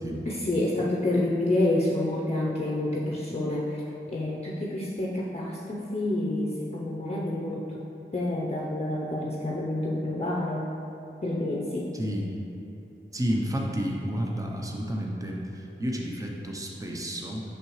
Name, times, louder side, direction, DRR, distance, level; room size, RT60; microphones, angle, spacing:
voice 1, 0.3-3.8 4.1-7.8 8.1-10.8 11.2-11.9, left 1 dB, 30° left, -4 dB, 0.6 m, -28 dB
voice 2, 11.9-12.3 13.1-17.4, equal, 15° right, -1 dB, 0.7 m, -31 dB
6.6 x 5.6 x 3.1 m, 2.8 s
wide cardioid pair, 45°, 21 cm